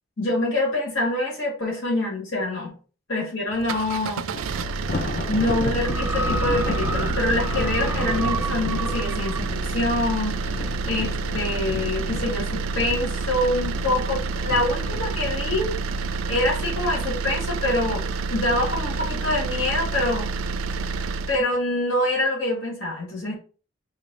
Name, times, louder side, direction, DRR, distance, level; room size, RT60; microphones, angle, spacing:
voice 1, 0.2-2.7 3.1-4.3 5.3-15.8 16.3-18.0 18.3-20.3 21.3-23.3, left 1 dB, 75° left, -4 dB, 1.9 m, -25 dB
sound 1, 3.5-21.4, right 4 dB, 85° right, 0.4 m, -28 dB
Thunder, 4.3-17.6 18.0-18.3 18.7-18.8 19.6-20.2, left 2 dB, 45° left, 0.6 m, -34 dB
sound 2, 5.8-9.5 10.3-10.4, right 2 dB, 10° right, 0.3 m, -32 dB
3.3 x 3.2 x 3.7 m, 0.38 s
head